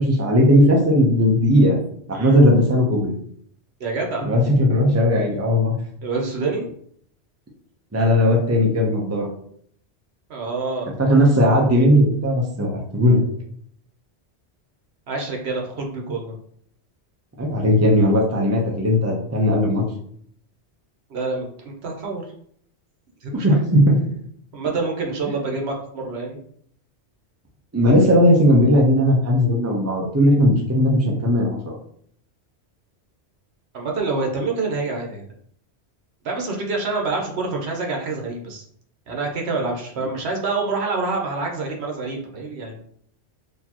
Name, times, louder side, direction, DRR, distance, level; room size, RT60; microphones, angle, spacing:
voice 1, 0.0-1.8 2.1-3.1 4.2-5.8 7.9-9.3 11.0-13.2 17.4-19.8 23.4-24.0 27.7-31.8, equal, 15° right, -1 dB, 0.7 m, -17 dB
voice 2, 3.8-4.3 6.0-6.7 10.3-10.9 15.1-16.3 21.1-22.2 23.2-23.6 24.5-26.4 33.7-35.2 36.2-38.6 39.1-42.8, right 3 dB, 70° right, 1 dB, 1.1 m, -27 dB
4.2 x 2.8 x 2.9 m, 0.63 s
omnidirectional pair, 1.2 m